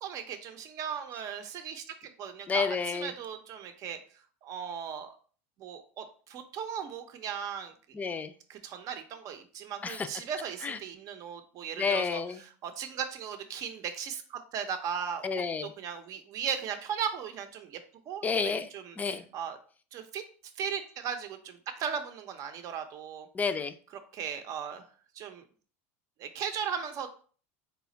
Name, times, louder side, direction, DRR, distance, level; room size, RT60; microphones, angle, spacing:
voice 1, 0.0-4.0 4.4-5.1 5.6-7.7 8.5-12.2 12.6-17.8 18.1-19.6 19.9-20.2 20.6-23.3 24.1-24.9 25.1-25.4 26.2-27.1, right 7 dB, 50° right, 7 dB, 0.6 m, -37 dB
voice 2, 2.5-3.1 7.9-8.3 9.8-10.1 10.6-10.8 11.8-12.4 15.2-15.7 18.2-18.7 19.0-19.2 23.3-23.7, left 5 dB, 20° left, 9 dB, 0.4 m, -30 dB
4.1 x 2.3 x 3.9 m, 0.42 s
hypercardioid pair, 100°, 8 cm